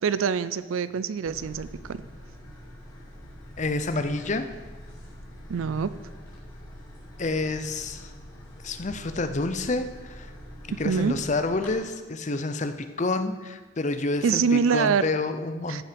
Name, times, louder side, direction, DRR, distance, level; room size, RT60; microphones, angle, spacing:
voice 1, 0.0-2.0 5.5-5.9 10.8-11.2 14.2-15.1 15.7-15.8, right 6 dB, 80° right, 14 dB, 0.4 m, -25 dB
sound 1, 1.2-11.7, equal, 20° left, 3.2 m, -45 dB
voice 2, 3.6-4.5 7.2-8.1 8.6-10.3 10.8-15.8, left 2 dB, 35° left, 9 dB, 0.6 m, -28 dB
14.5 x 5.7 x 5.2 m, 1.3 s
head